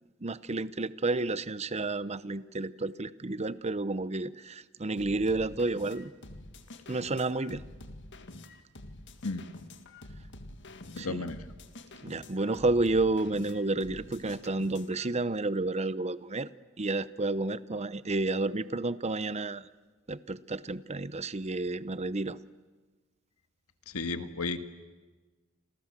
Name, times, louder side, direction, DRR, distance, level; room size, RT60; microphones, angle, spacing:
voice 1, 0.2-6.1 6.9-7.6 11.0-11.2 12.0-16.5 16.8-19.7 20.1-22.4, right 2 dB, 30° right, 16 dB, 0.8 m, -31 dB
sound 1, 5.0-15.1, left 2 dB, 55° left, 2.0 m, -47 dB
voice 2, 10.9-11.4 23.9-24.6, left 3 dB, 85° left, 9 dB, 1.7 m, -33 dB
29.5 x 27.0 x 7.6 m, 1.3 s
head